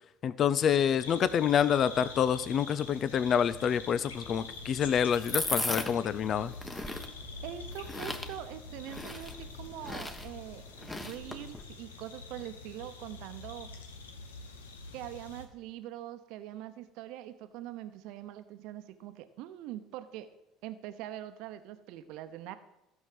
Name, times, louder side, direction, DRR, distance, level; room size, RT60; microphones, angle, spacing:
voice 1, 0.2-6.5, left 8 dB, 50° left, 16 dB, 0.5 m, -27 dB
sound 1, 1.0-15.5, left 3 dB, 90° left, 1.2 m, -46 dB
sound 2, 4.1-11.6, left 2 dB, 15° left, 1.4 m, -38 dB
voice 2, 7.4-13.7 14.9-20.3 20.6-22.6, right 12 dB, 65° right, 10 dB, 0.9 m, -43 dB
13.5 x 5.5 x 7.6 m, 0.91 s
hypercardioid pair, 65°, 0 cm